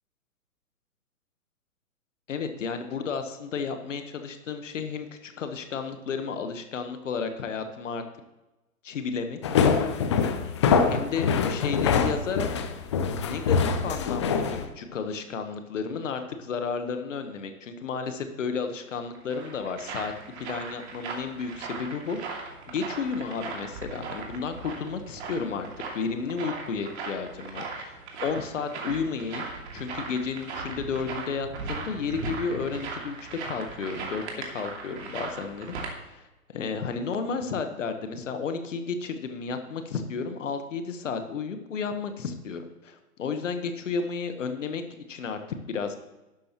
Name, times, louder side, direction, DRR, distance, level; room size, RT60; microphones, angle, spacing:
voice 1, 2.3-8.0 8.8-9.4 10.9-12.5 13.2-20.1 20.4-22.2 22.7-25.7 25.9-29.5 29.7-34.2 34.5-35.7 36.0-44.8 45.1-45.4 45.7-46.0, left 5 dB, 55° left, 7 dB, 1.3 m, -32 dB
sound 1, 9.4-14.7, left 6 dB, 20° left, 0.5 m, -24 dB
sound 2, 18.9-35.9, right 4 dB, 45° right, 2.6 m, -38 dB
12.0 x 11.5 x 3.0 m, 1.0 s
figure-of-eight pair, 130°, 44 cm